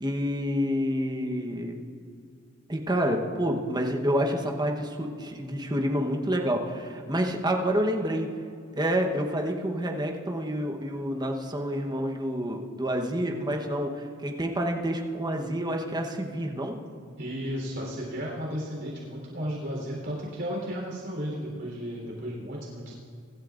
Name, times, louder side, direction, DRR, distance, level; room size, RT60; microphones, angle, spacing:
voice 1, 0.0-1.8 2.7-8.3 8.7-16.8, equal, 20° right, 2 dB, 1.0 m, -28 dB
voice 2, 17.2-22.9, equal, 60° right, -3 dB, 3.8 m, -34 dB
24.0 x 12.5 x 2.5 m, 2.4 s
head